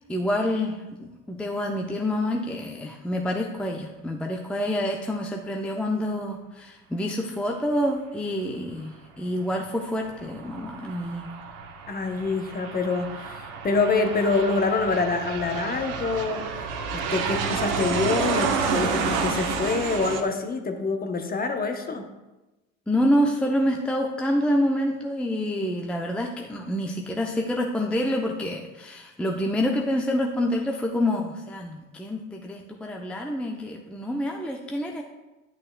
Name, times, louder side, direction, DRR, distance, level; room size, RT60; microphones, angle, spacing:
voice 1, 0.1-11.3 22.9-35.0, left 1 dB, 5° left, 1 dB, 0.5 m, -27 dB
Aircraft, 10.0-20.2, right 5 dB, 75° right, 1.1 m, -30 dB
voice 2, 11.9-16.6 16.9-22.1, left 4 dB, 20° left, 6 dB, 0.8 m, -26 dB
10.5 x 6.3 x 2.2 m, 1.1 s
hypercardioid pair, 80°, 40 cm